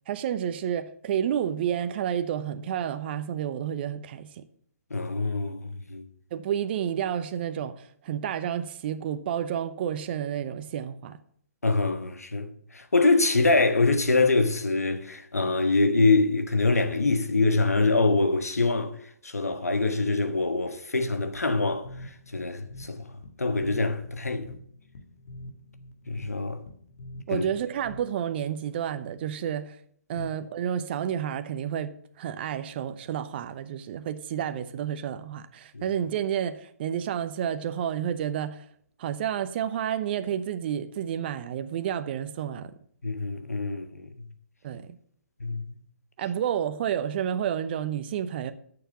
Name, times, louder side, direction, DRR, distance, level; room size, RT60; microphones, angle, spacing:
voice 1, 0.1-4.4 6.3-11.2 27.3-29.8 30.1-38.6 39.0-42.7 44.6-44.9 46.2-48.5, right 9 dB, 45° right, 0.8 m, -30 dB
voice 2, 4.9-6.0 11.6-18.9 19.2-24.5 26.1-26.6 27.3-27.4 30.1-30.3 35.7-35.8 43.0-44.1 45.4-45.8, left 3 dB, 85° left, 1.5 m, -25 dB
sound 1, 21.7-28.4, left 1 dB, 60° left, 1.7 m, -46 dB
10.0 x 6.9 x 7.1 m
figure-of-eight pair, 135°, 8 cm